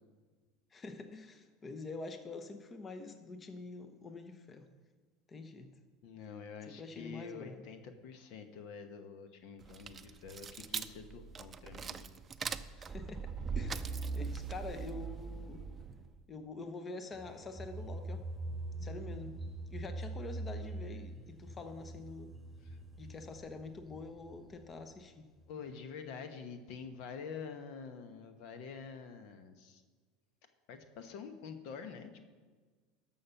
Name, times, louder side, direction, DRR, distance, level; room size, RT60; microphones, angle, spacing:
voice 1, 0.7-4.7 5.3-5.7 6.7-7.7 12.8-15.6 16.3-18.2 18.8-19.3 19.7-22.3 23.0-25.3, left 3 dB, 30° left, 8 dB, 1.0 m, -46 dB
voice 2, 6.0-12.1 22.6-22.8 23.9-24.0 25.5-29.8 30.7-32.2, left 6 dB, 60° left, 8 dB, 1.1 m, -47 dB
sound 1, 9.6-16.2, right 5 dB, 30° right, 0.5 m, -40 dB
sound 2, 17.1-25.0 25.4-25.6, right 2 dB, ahead, 3.3 m, -44 dB
13.0 x 5.7 x 5.7 m, 1.4 s
hypercardioid pair, 85°, 0 cm